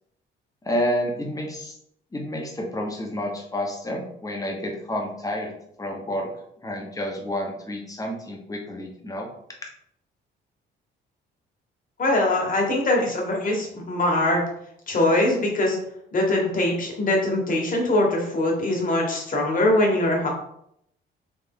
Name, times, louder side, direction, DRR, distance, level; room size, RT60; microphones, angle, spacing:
voice 1, 0.6-1.8 2.1-5.5 5.8-6.3 6.6-9.3, equal, 15° left, 0 dB, 1.1 m, -29 dB
voice 2, 12.0-14.4 14.9-15.8 16.1-20.3, left 1 dB, 45° left, 0 dB, 1.4 m, -22 dB
3.5 x 3.2 x 3.7 m, 0.74 s
cardioid pair, 90°, 20 cm